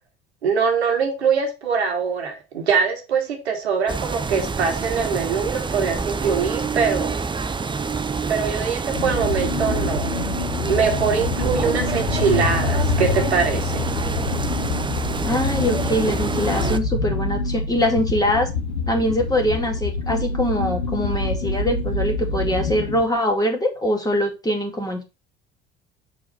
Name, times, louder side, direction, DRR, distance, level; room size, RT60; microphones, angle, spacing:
voice 1, 0.4-7.2 8.3-10.1 10.7-13.8, right 6 dB, 80° right, 1.3 m, -23 dB
sound 1, 3.9-16.8, right 4 dB, 15° right, 0.6 m, -27 dB
sound 2, 8.9-23.0, left 4 dB, 80° left, 1.4 m, -26 dB
voice 2, 15.2-18.5 18.9-25.0, equal, 10° left, 2.3 m, -23 dB
6.6 x 4.6 x 4.1 m
figure-of-eight pair, 55°, 32 cm